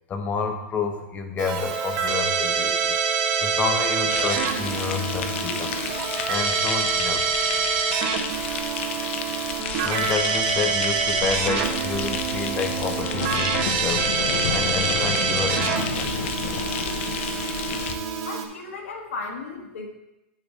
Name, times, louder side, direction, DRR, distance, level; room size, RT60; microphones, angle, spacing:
voice 1, 0.1-2.9 3.4-5.8 6.2-7.2 9.8-16.5, left 5 dB, 20° left, 5 dB, 0.8 m, -29 dB
Keyboard (musical), 1.4-18.5, right 6 dB, 45° right, 0.8 m, -26 dB
sound 1, 4.1-18.0, left 7 dB, 65° left, 0.6 m, -31 dB
voice 2, 18.2-19.9, left 3 dB, 85° left, 0 dB, 1.5 m, -35 dB
7.8 x 6.5 x 3.1 m, 0.94 s
supercardioid pair, 145°, 7 cm